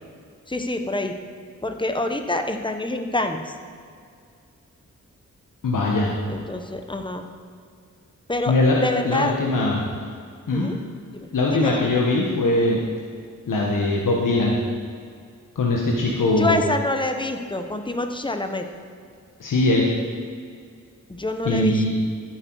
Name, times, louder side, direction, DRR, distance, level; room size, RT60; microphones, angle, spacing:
voice 1, 0.5-1.1 1.6-3.5 6.3-7.3 8.3-8.5 8.8-9.3 10.5-10.8 11.1-11.9 16.3-18.6 21.1-21.8, left 2 dB, 15° left, 6 dB, 0.9 m, -26 dB
voice 2, 5.6-6.2 8.5-8.8 9.0-9.8 10.5-10.7 11.3-12.8 13.5-14.6 15.5-16.6 19.4-19.9 21.4-21.9, left 2 dB, 85° left, -2 dB, 1.3 m, -21 dB
13.5 x 7.9 x 4.7 m, 2.2 s
wide cardioid pair, 90°, 31 cm